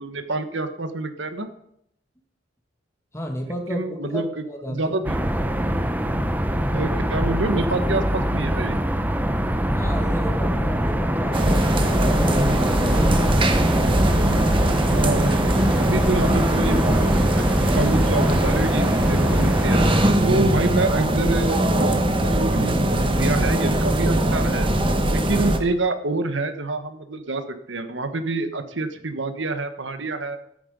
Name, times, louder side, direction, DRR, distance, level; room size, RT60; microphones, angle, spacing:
voice 1, 0.0-1.5 3.7-5.2 6.7-8.8 15.0-17.4 17.7-24.7 25.1-30.4, right 2 dB, 80° right, 8 dB, 1.3 m, -27 dB
voice 2, 3.1-5.0 9.8-13.3, equal, 15° left, 1 dB, 2.1 m, -32 dB
sound 1, 5.0-20.1, equal, 10° right, 0.7 m, -23 dB
sound 2, 11.3-25.6, right 1 dB, 30° right, 1.2 m, -21 dB
14.0 x 9.4 x 5.2 m, 0.73 s
head